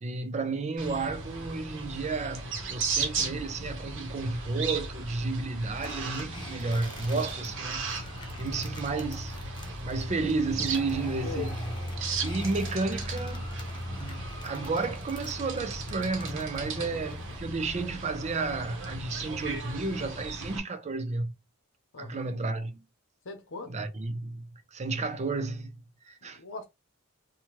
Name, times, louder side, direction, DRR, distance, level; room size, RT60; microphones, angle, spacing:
voice 1, 0.0-7.8 8.4-9.4 9.8-11.6 12.2-13.4 13.9-21.3 22.0-22.8 23.7-25.7 26.0-26.4, right 3 dB, 30° right, 0.4 m, -32 dB
sound 1, 0.8-20.6, right 3 dB, 60° right, 0.8 m, -36 dB
sound 2, 5.8-17.4, left 2 dB, 20° left, 0.6 m, -48 dB
voice 2, 6.7-7.1 11.2-11.5 16.8-17.2 21.9-22.3 23.2-23.8 26.3-26.7, left 4 dB, 65° left, 0.8 m, -40 dB
2.8 x 2.3 x 3.0 m
head